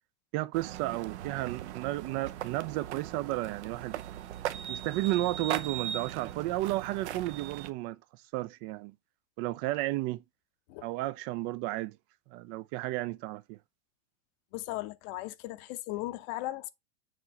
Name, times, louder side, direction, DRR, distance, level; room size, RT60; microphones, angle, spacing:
voice 1, 0.3-4.0 4.5-8.0 8.3-8.9 9.4-10.2 10.8-12.0 12.3-13.6, right 18 dB, 40° right, 0.4 m, -33 dB
sound 1, 0.5-7.7, right 11 dB, 75° right, 0.8 m, -39 dB
voice 2, 14.5-16.7, left 17 dB, 50° left, 0.8 m, -37 dB
7.2 x 2.9 x 5.6 m
hypercardioid pair, 115°, 34 cm